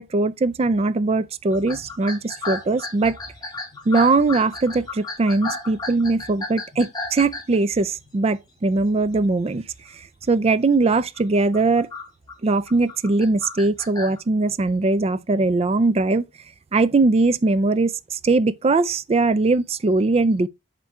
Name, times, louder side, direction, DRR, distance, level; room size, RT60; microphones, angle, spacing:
voice 1, 0.0-3.2 3.9-9.6 10.3-11.9 12.4-16.3 16.7-20.5, right 3 dB, 30° right, 0.4 m, -20 dB
sound 1, 1.5-8.1 8.7-9.1 9.5-9.8 10.2-10.4 11.0-14.2, left 2 dB, 20° left, 1.7 m, -34 dB
7.1 x 3.8 x 4.2 m
head